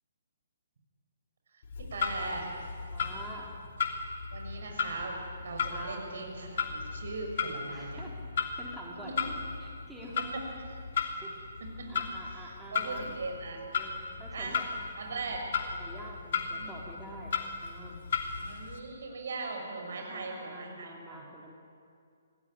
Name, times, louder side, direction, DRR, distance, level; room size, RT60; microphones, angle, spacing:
Clock, 1.6-18.8, left 5 dB, 50° left, 3.0 m, -36 dB
voice 1, 1.8-2.5 4.3-8.1 8.9-9.3 10.2-10.7 11.0-11.1 11.8-13.6 14.3-14.6 15.0-15.5 16.5-16.7 18.4-21.2, right 3 dB, 55° right, 2 dB, 6.5 m, -40 dB
voice 2, 2.9-3.5 5.7-6.1 7.7-8.1 8.6-9.1 9.6-10.2 11.2-11.3 11.9-13.1 13.7-14.6 15.3-17.4 17.6-18.0 19.9-21.5, right 1 dB, 5° right, -4 dB, 3.5 m, -47 dB
26.0 x 18.0 x 10.0 m, 2.4 s
figure-of-eight pair, 130°, 0 cm